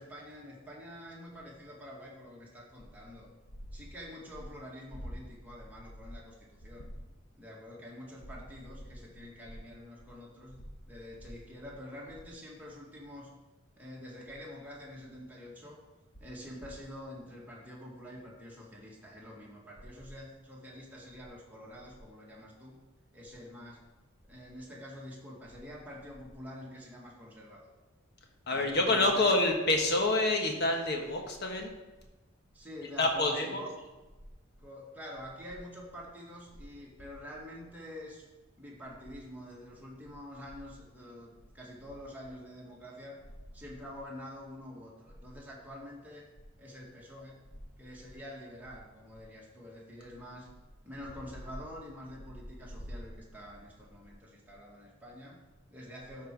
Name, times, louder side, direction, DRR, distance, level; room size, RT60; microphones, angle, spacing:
voice 1, 0.0-3.3 3.7-6.9 7.3-13.3 13.8-15.8 16.2-22.9 23.1-23.9 24.2-27.7 28.5-29.3 32.5-33.9 34.6-38.3 38.6-43.2 43.5-46.3 46.6-47.5 47.8-50.5 50.8-56.3, left 1 dB, 10° right, -4 dB, 1.9 m, -47 dB
voice 2, 28.5-31.7 33.0-33.6, left 2 dB, 55° left, 2 dB, 1.3 m, -27 dB
13.0 x 4.5 x 4.7 m, 1.1 s
head